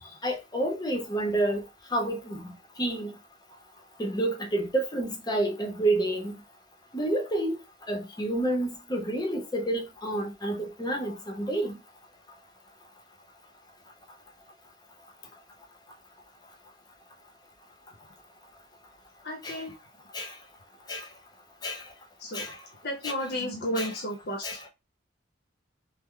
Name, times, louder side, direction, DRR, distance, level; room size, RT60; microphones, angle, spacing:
voice 1, 0.2-1.6 1.9-2.4 2.8-3.1 4.0-6.3 6.9-7.6 7.9-11.8 19.4-19.6 20.1-20.3 20.9-21.1 21.6-21.8 22.3-22.6 23.0-23.1 23.8-23.9 24.4-24.6, right 1 dB, 20° left, 0.6 m, -29 dB
voice 2, 19.2-19.7 22.2-22.5 22.8-24.7, equal, 55° left, 0.7 m, -33 dB
3.2 x 2.0 x 3.6 m
head